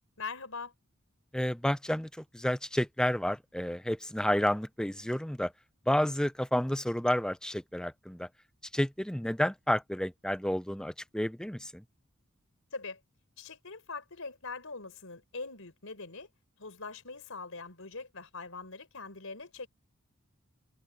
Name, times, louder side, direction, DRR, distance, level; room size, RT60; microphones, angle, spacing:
voice 1, 0.2-0.7 12.7-13.0 13.4-16.3 16.6-19.7, left 4 dB, 75° left, 4.6 m, -42 dB
voice 2, 1.3-5.5 5.9-8.3 8.7-11.8, left 1 dB, 5° left, 0.6 m, -30 dB
head